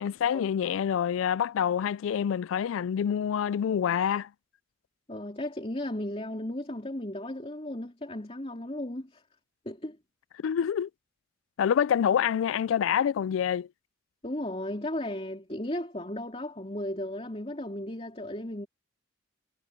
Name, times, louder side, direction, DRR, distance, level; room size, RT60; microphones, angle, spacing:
voice 1, 0.0-4.3 10.4-10.9 11.6-13.7, left 8 dB, 75° left, 0.3 m, -27 dB
voice 2, 5.1-9.2 9.6-10.0 14.2-18.7, left 1 dB, 30° left, 3.2 m, -35 dB
head